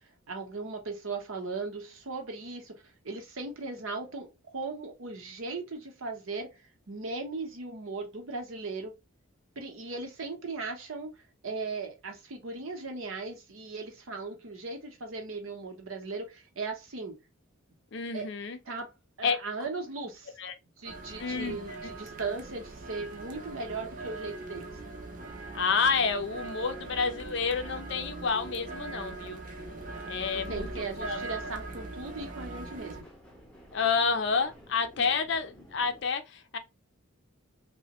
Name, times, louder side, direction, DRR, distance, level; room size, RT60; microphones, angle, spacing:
voice 1, 0.3-6.6 6.9-8.9 9.6-11.1 11.4-17.2 18.1-18.2 18.7-18.9 19.2-20.3 20.8-24.7 29.0-29.4 30.3-33.0 35.0-35.1, right 3 dB, 75° right, 0.8 m, -38 dB
voice 2, 17.9-18.6 19.2-19.4 20.4-20.5 21.2-21.6 21.8-21.9 25.5-29.4 30.1-31.3 33.7-36.6, left 5 dB, 55° left, 0.4 m, -29 dB
sound 1, 20.8-33.0, right 3 dB, 40° right, 0.5 m, -41 dB
sound 2, 29.5-36.0, equal, 5° left, 0.7 m, -53 dB
3.0 x 2.1 x 2.8 m
head